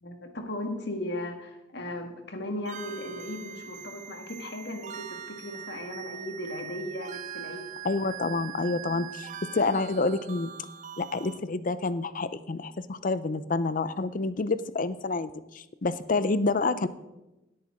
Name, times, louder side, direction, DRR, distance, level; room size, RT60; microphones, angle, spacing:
voice 1, 0.0-7.7, left 1 dB, 65° left, 4 dB, 1.7 m, -37 dB
sound 1, 2.7-11.4, right 9 dB, 40° right, 0.5 m, -42 dB
voice 2, 7.8-10.5 11.0-16.9, left 3 dB, 45° left, 14 dB, 0.6 m, -28 dB
17.0 x 8.7 x 3.7 m, 0.98 s
head